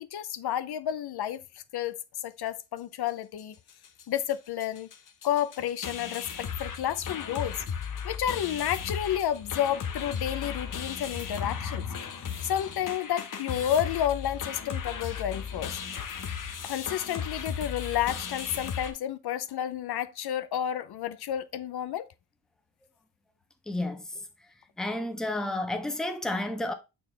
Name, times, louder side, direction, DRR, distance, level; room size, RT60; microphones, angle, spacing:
voice 1, 0.0-3.6 4.1-4.9 5.2-7.6 8.0-12.1 12.4-15.8 16.6-22.1, left 10 dB, 70° left, 0.6 m, -31 dB
sound 1, 3.4-3.5 3.7-4.0 4.3-4.4 4.6-18.9, left 7 dB, 50° left, 1.0 m, -36 dB
voice 2, 23.7-24.0 24.8-26.7, left 1 dB, ahead, 0.6 m, -31 dB
7.4 x 4.3 x 3.2 m
wide cardioid pair, 165°, 41 cm